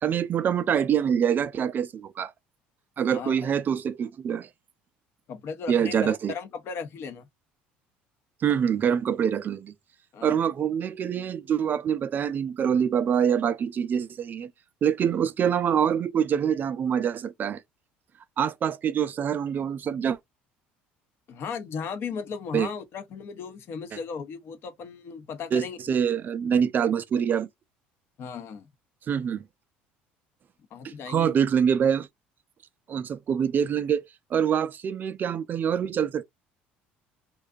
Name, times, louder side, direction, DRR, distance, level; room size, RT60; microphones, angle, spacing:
voice 1, 0.0-2.3 3.0-4.5 5.7-6.3 8.4-9.7 10.2-14.5 14.8-17.6 18.4-20.2 22.5-22.7 25.5-27.5 29.1-29.4 30.8-32.1 32.9-34.0 34.3-36.2, right 8 dB, 40° right, 0.3 m, -25 dB
voice 2, 3.1-3.5 5.3-7.2 10.1-10.4 21.3-25.8 28.2-28.7 30.7-31.4, left 6 dB, 55° left, 0.7 m, -36 dB
2.5 x 2.3 x 2.3 m
supercardioid pair, 85°, 5 cm